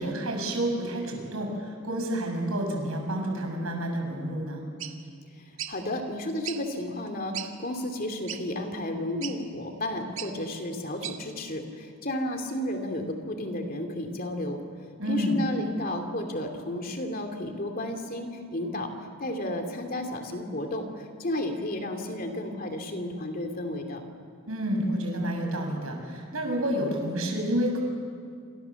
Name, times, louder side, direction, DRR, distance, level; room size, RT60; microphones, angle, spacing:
voice 1, 0.0-4.6 15.0-15.4 24.5-27.8, equal, 85° right, 2 dB, 6.5 m, -29 dB
sound 1, 4.8-4.9 5.6-5.7 6.4-6.6 7.1-7.2 7.3-7.5 8.3-8.4 9.2-9.4 10.2-10.3 11.0-11.2, right 11 dB, 70° right, 1.8 m, -35 dB
voice 2, 5.4-14.6 15.1-18.9 19.2-24.0, left 1 dB, 45° left, 4 dB, 2.9 m, -32 dB
28.0 x 26.5 x 7.2 m, 2.2 s
head